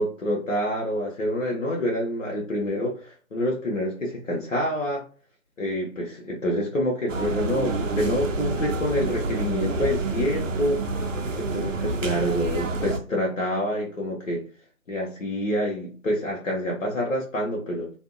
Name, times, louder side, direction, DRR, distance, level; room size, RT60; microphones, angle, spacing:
voice 1, 0.0-5.0 5.6-10.8 11.4-14.4 14.9-17.9, equal, 70° left, -2 dB, 0.9 m, -27 dB
sound 1, 7.1-13.0, right 3 dB, 70° right, 0.6 m, -28 dB
2.6 x 2.2 x 2.5 m, 0.38 s
figure-of-eight pair, 150°, 40 cm